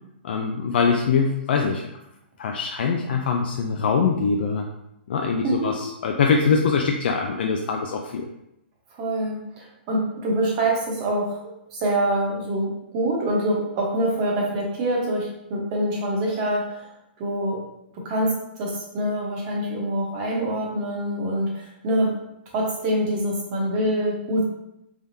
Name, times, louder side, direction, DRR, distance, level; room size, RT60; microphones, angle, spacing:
voice 1, 0.2-1.9 2.4-4.7 5.1-8.3, left 5 dB, 60° left, 2 dB, 0.4 m, -23 dB
voice 2, 8.9-11.3 11.7-16.9 17.2-17.6 18.0-22.1 22.5-24.4, right 1 dB, 35° right, -3 dB, 1.1 m, -25 dB
3.5 x 3.4 x 2.7 m, 0.85 s
hypercardioid pair, 150°, 6 cm